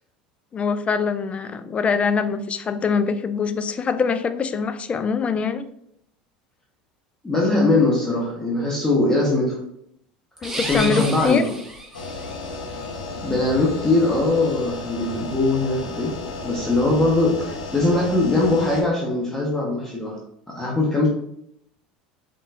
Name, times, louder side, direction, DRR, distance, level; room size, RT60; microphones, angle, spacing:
voice 1, 0.5-5.7 10.4-11.4, left 5 dB, 30° left, 11 dB, 0.3 m, -23 dB
voice 2, 7.2-9.6 10.6-11.4 13.2-16.1 16.4-20.2 20.5-21.1, left 2 dB, 10° left, -4 dB, 1.1 m, -21 dB
sound 1, 10.4-12.4, right 1 dB, 10° right, 1.3 m, -31 dB
sound 2, 11.9-18.8, left 3 dB, 80° left, 0.8 m, -33 dB
4.0 x 3.7 x 2.4 m, 0.74 s
hypercardioid pair, 75°, 4 cm